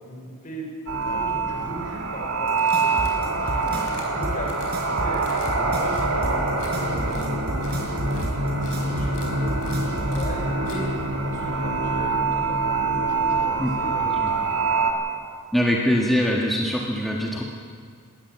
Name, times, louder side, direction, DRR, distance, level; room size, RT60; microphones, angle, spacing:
voice 1, 0.0-0.7 1.0-5.2 5.5-6.3 6.6-10.9 11.2-14.1, equal, 40° left, 0 dB, 5.6 m, -38 dB
sound 1, 0.9-14.9, right 3 dB, 80° right, 2.7 m, -25 dB
sound 2, 2.5-10.4, right 1 dB, 50° right, 5.1 m, -30 dB
sound 3, 2.6-3.2 3.6-4.1 4.4-4.8 5.1-5.5 5.8-6.7 7.1-7.3 7.6-7.8 8.1-8.3 8.6-8.8 9.1-9.3 9.6-9.8 10.1-10.3 10.7-10.8, left 7 dB, 80° left, 4.7 m, -46 dB
voice 2, 15.5-17.4, equal, ahead, -3 dB, 1.6 m, -22 dB
20.0 x 18.0 x 7.4 m, 2.1 s
head